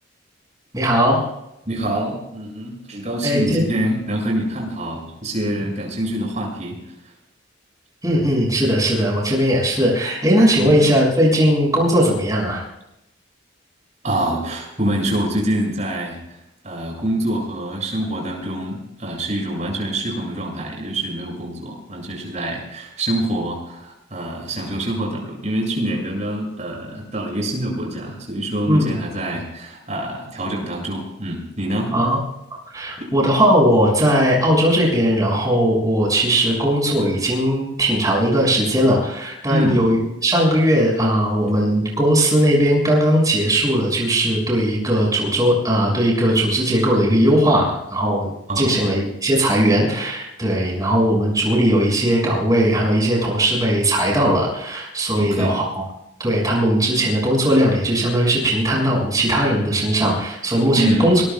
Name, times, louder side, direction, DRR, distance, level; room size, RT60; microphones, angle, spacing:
voice 1, 0.7-1.2 3.2-3.6 8.0-12.6 28.7-29.0 31.9-32.2 32.7-40.0 40.2-48.3 48.5-55.8 56.2-61.2, equal, 20° right, -2 dB, 6.6 m, -18 dB
voice 2, 1.7-7.1 10.6-10.7 14.0-32.0 39.5-39.8 48.5-48.8 55.2-55.5 60.7-61.1, right 1 dB, 35° right, -1 dB, 7.5 m, -25 dB
25.5 x 21.0 x 2.4 m, 0.85 s
head